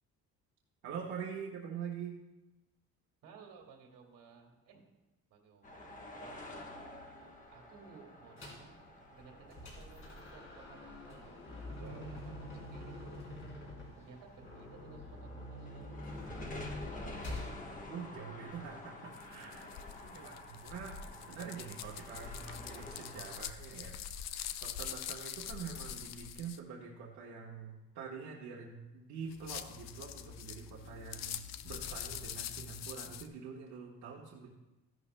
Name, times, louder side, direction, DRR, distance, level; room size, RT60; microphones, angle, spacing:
voice 1, 0.8-2.2 11.7-12.2 17.9-19.8 20.2-34.5, right 6 dB, 70° right, -4 dB, 1.3 m, -45 dB
voice 2, 3.2-4.8 5.3-6.7 7.5-11.4 11.8-13.2 13.8-17.1 20.0-20.4 21.0-21.1 22.3-22.4, right 5 dB, 90° right, 2 dB, 2.0 m, -57 dB
sound 1, 5.6-23.4, left 1 dB, 25° left, 1.2 m, -50 dB
sound 2, 8.4-8.7 9.2-17.6, left 1 dB, 40° left, 3.2 m, -45 dB
sound 3, 19.1-26.6 29.3-33.3, left 10 dB, 60° left, 0.5 m, -44 dB
14.5 x 11.5 x 2.2 m, 1.1 s
cardioid pair, 170°, 31 cm